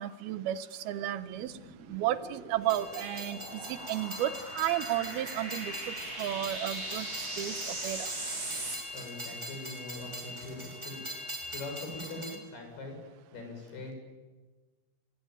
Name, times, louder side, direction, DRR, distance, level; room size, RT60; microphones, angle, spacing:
voice 1, 0.0-1.5 1.9-7.1 7.4-8.1, right 13 dB, 75° right, 13 dB, 2.7 m, -33 dB
sound 1, 1.2-8.8, right 2 dB, 30° right, 7.0 m, -40 dB
Train, 2.6-12.4, left 1 dB, 10° right, 3.0 m, -42 dB
voice 2, 8.9-11.0 11.5-13.0 13.3-13.9, left 2 dB, 70° left, 3 dB, 8.7 m, -42 dB
27.5 x 22.5 x 9.1 m, 1.3 s
omnidirectional pair, 4.8 m